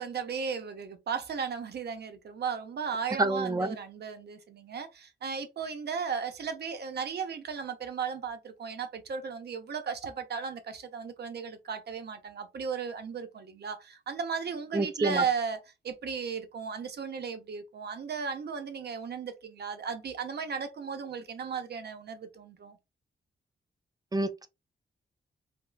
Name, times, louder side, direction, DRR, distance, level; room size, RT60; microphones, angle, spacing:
voice 1, 0.0-15.6 15.8-22.8, right 6 dB, 60° right, 0.7 m, -35 dB
voice 2, 3.2-3.8 14.7-15.2 24.1-24.5, right 2 dB, 20° right, 0.5 m, -28 dB
3.5 x 2.4 x 2.3 m
cardioid pair, 75°, 19 cm